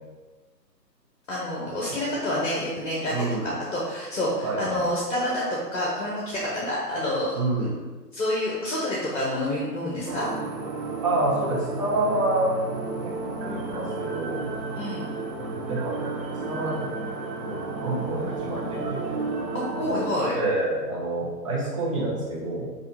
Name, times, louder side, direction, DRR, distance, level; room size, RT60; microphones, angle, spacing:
voice 1, 1.3-5.4 5.7-7.7 8.1-10.3 14.7-15.1 19.5-20.4, left 1 dB, 50° left, -5 dB, 1.1 m, -28 dB
voice 2, 3.1-3.6 4.4-4.9 7.3-7.7 11.0-12.5 13.0-13.1 13.4-14.5 15.3-16.1 16.5-16.9 17.4-19.2 20.3-22.8, right 2 dB, 20° right, -6 dB, 0.7 m, -28 dB
sound 1, 10.1-20.1, right 3 dB, 85° right, 0.8 m, -32 dB
5.6 x 2.5 x 3.4 m, 1.3 s
figure-of-eight pair, 135°, 50 cm